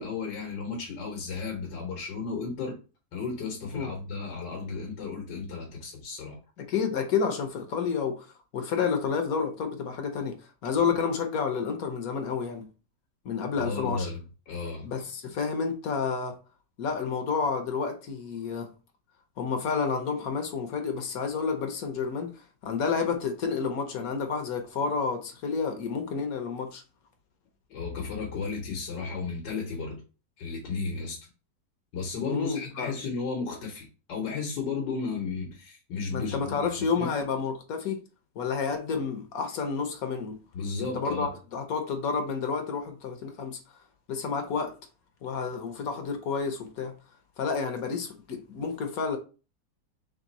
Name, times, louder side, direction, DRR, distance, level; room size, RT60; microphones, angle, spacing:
voice 1, 0.0-2.8 3.1-6.4 10.8-10.9 13.6-14.2 14.5-14.9 27.7-30.0 30.4-31.2 31.9-37.1 40.5-41.3, left 4 dB, 85° left, 1.6 m, -34 dB
voice 2, 6.6-8.3 8.5-12.7 13.2-14.1 14.8-16.4 16.8-18.7 19.4-26.8 32.2-32.9 36.1-38.0 38.4-40.4 40.9-43.6 44.1-44.7 45.2-46.9 47.4-49.2, left 5 dB, 65° left, 1.1 m, -30 dB
3.6 x 3.3 x 4.0 m
omnidirectional pair, 1.8 m